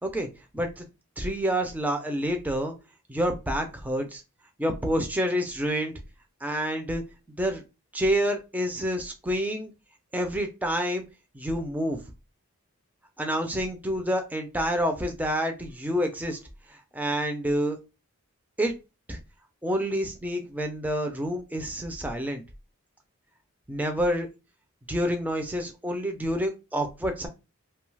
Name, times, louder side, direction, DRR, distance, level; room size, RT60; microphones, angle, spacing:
voice 1, 0.5-0.8 1.2-2.7 3.1-4.2 4.6-5.9 6.4-7.0 7.4-7.6 7.9-9.7 10.1-11.1 11.3-12.0 13.2-16.4 16.7-17.8 18.6-18.7 19.1-19.2 19.6-22.4 23.7-24.3 24.9-27.3, equal, 5° right, 4 dB, 0.4 m, -28 dB
2.7 x 2.3 x 3.2 m, 0.27 s
head